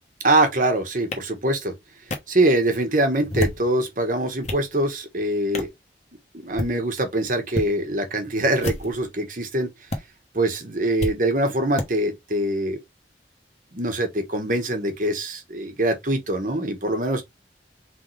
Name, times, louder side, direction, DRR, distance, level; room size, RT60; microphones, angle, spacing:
voice 1, 0.2-1.7 2.3-5.7 6.3-9.7 10.3-12.8 13.7-17.2, right 1 dB, 50° right, 1.2 m, -23 dB
sound 1, 1.1-1.2 2.1-2.2 3.2-3.7 4.2-4.7 5.5-5.8 6.4-6.7 7.5-7.7 8.5-9.0 9.9-10.0 11.0-11.1 11.8-11.9, left 1 dB, 40° left, 1.0 m, -28 dB
4.1 x 3.5 x 3.2 m
head